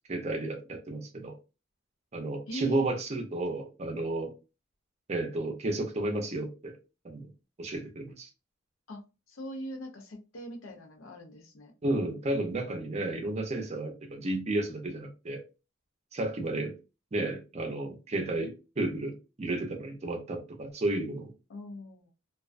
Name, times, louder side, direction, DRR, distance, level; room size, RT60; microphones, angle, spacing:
voice 1, 0.0-1.4 2.1-4.3 5.1-6.8 7.0-7.3 7.6-8.3 11.8-15.4 16.1-16.7 17.1-21.3, right 2 dB, 35° right, 0.5 m, -32 dB
voice 2, 2.5-2.8 8.9-9.0 9.3-11.7 21.5-22.1, equal, 75° left, 0.6 m, -41 dB
2.3 x 2.2 x 2.4 m
head